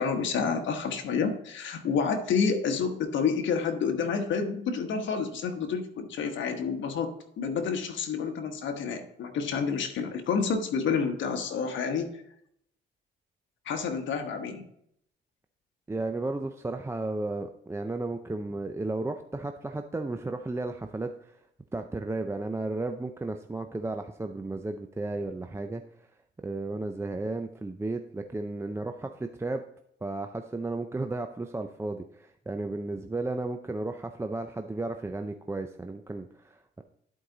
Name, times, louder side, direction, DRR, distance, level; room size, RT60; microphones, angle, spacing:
voice 1, 0.0-7.1 7.4-12.1 13.7-14.7, left 5 dB, 70° left, 5 dB, 1.2 m, -29 dB
voice 2, 15.9-21.4 21.7-25.8 26.4-29.6 30.0-36.8, right 2 dB, 15° right, 6 dB, 0.5 m, -34 dB
11.0 x 4.7 x 3.9 m, 0.72 s
cardioid pair, 90°, 20 cm